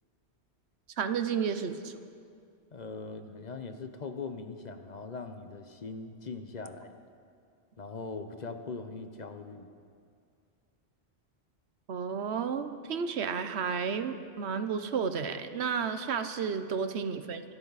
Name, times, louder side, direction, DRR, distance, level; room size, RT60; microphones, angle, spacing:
voice 1, 1.0-1.9 11.9-17.4, right 6 dB, 70° right, 10 dB, 1.1 m, -32 dB
voice 2, 2.7-6.9 7.8-9.7, left 4 dB, 40° left, 7 dB, 0.9 m, -41 dB
25.0 x 13.0 x 4.1 m, 2.3 s
omnidirectional pair, 1.2 m